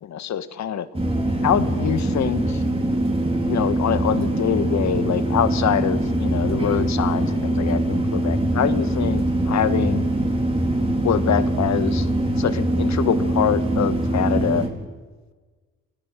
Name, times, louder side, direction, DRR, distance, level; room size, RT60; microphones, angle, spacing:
voice 1, 0.1-0.9 1.4-2.6 3.5-10.0 11.0-12.1 12.4-14.7, left 9 dB, 65° left, 12 dB, 1.6 m, -24 dB
sound 1, 0.9-14.7, right 1 dB, 20° right, 4.5 m, -23 dB
26.0 x 18.5 x 7.6 m, 1.4 s
cardioid pair, 90°, 30 cm